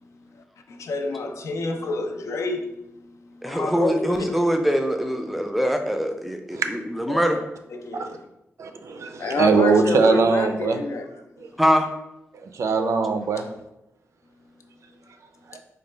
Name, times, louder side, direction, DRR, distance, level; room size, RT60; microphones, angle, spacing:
voice 1, 0.7-2.9 3.4-4.4 7.1-7.4 7.7-8.2 9.2-11.1, left 2 dB, 75° left, 5 dB, 0.4 m, -28 dB
voice 2, 3.4-7.4 11.6-11.9, equal, ahead, 5 dB, 0.4 m, -23 dB
voice 3, 8.6-10.8 12.4-13.5 15.5-15.6, right 4 dB, 75° right, 6 dB, 0.4 m, -21 dB
3.9 x 2.2 x 3.2 m, 0.85 s
wide cardioid pair, 110°, 5 cm